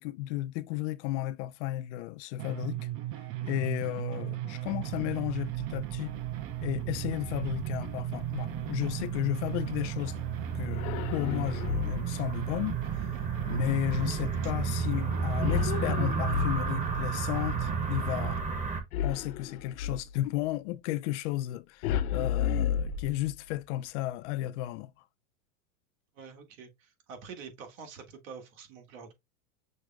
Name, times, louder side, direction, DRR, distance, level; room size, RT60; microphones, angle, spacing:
voice 1, 0.0-2.9 3.4-6.2 6.6-10.2 10.5-13.1 13.5-18.4 19.0-24.9, left 15 dB, 55° left, 0.5 m, -33 dB
sound 1, 2.4-18.4, right 15 dB, 35° right, 0.5 m, -36 dB
sound 2, 4.7-18.8, right 4 dB, 15° right, 1.0 m, -35 dB
sound 3, 10.7-12.2 15.4-17.0 18.9-20.1 21.8-23.5, left 9 dB, 85° left, 0.8 m, -32 dB
voice 2, 26.1-29.1, right 6 dB, 65° right, 1.7 m, -46 dB
6.3 x 2.1 x 3.3 m
supercardioid pair, 125°, 42 cm